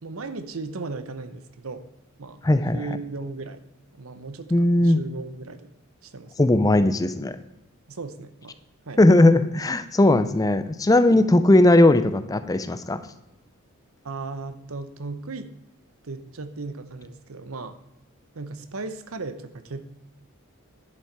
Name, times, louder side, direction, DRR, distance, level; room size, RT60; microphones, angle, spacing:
voice 1, 0.0-1.9 2.2-2.4 2.7-3.6 3.9-5.7 6.0-6.5 7.9-8.6 8.9-9.0 14.0-15.5 16.0-17.8 18.3-19.8, right 3 dB, 70° right, 12 dB, 0.8 m, -36 dB
voice 2, 2.4-2.8 4.5-5.0 6.4-7.4 9.0-13.0, left 1 dB, 15° left, 12 dB, 0.4 m, -18 dB
10.5 x 7.2 x 4.6 m, 0.88 s
head